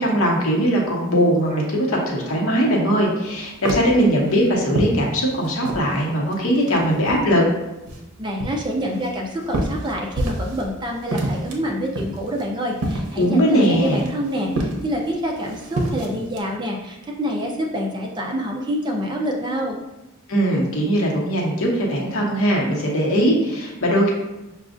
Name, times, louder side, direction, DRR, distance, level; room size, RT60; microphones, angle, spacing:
voice 1, 0.0-7.4 13.2-14.0 20.3-24.1, equal, 70° left, -2 dB, 0.9 m, -20 dB
sound 1, 3.2-6.0 6.3-7.4 7.9-10.7 11.0-16.4, right 1 dB, 85° right, 0.7 m, -28 dB
voice 2, 8.2-19.8, equal, 20° right, 0 dB, 0.4 m, -26 dB
6.0 x 2.4 x 2.5 m, 0.99 s
head